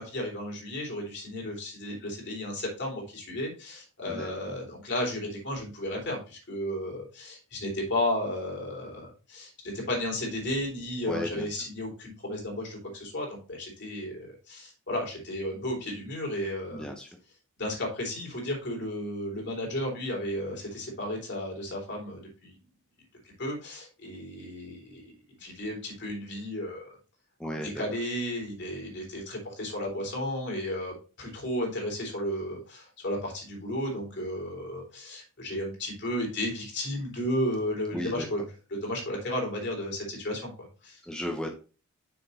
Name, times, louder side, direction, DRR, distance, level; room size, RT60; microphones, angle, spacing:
voice 1, 0.0-16.9 17.6-22.5 23.2-27.0 27.6-38.4 38.7-41.0, left 1 dB, 55° left, -1 dB, 3.5 m, -33 dB
voice 2, 11.1-11.5 16.7-17.1 27.4-27.8 37.9-38.3 41.0-41.5, left 1 dB, 5° left, 2 dB, 0.8 m, -34 dB
6.9 x 6.0 x 3.9 m, 0.33 s
head